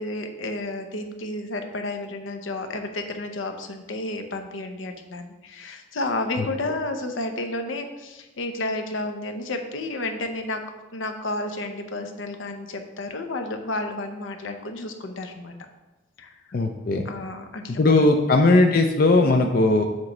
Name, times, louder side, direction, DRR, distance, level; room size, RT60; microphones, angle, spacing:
voice 1, 0.0-10.6 10.9-15.5 16.2-16.3 17.0-18.1, left 2 dB, 85° left, 5 dB, 0.8 m, -31 dB
voice 2, 16.5-17.1 17.8-19.8, left 2 dB, 50° left, 3 dB, 0.5 m, -18 dB
7.4 x 3.1 x 5.9 m, 1.1 s
head